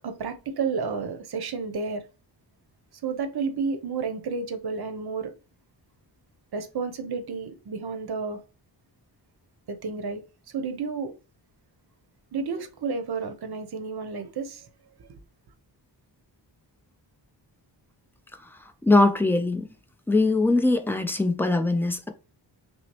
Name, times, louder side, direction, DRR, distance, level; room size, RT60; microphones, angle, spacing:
voice 1, 0.0-2.0 3.0-5.3 6.5-8.4 9.7-10.2 10.5-11.1 12.3-14.7 15.0-15.2, right 5 dB, 55° right, 0.7 m, -31 dB
voice 2, 18.8-19.7 20.1-22.1, left 2 dB, 5° left, 0.3 m, -21 dB
5.9 x 2.0 x 2.9 m
wide cardioid pair, 170°, 45 cm